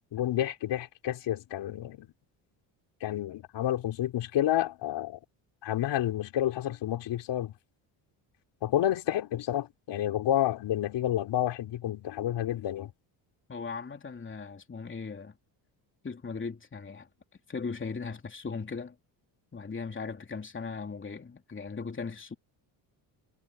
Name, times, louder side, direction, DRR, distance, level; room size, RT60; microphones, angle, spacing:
voice 1, 0.1-2.1 3.0-5.2 5.6-7.5 8.6-12.9, left 12 dB, 70° left, 3.7 m, -30 dB
voice 2, 13.5-15.3 16.0-17.1 17.5-18.9 19.5-22.3, left 4 dB, 25° left, 3.1 m, -38 dB
cardioid pair, 90°, 44 cm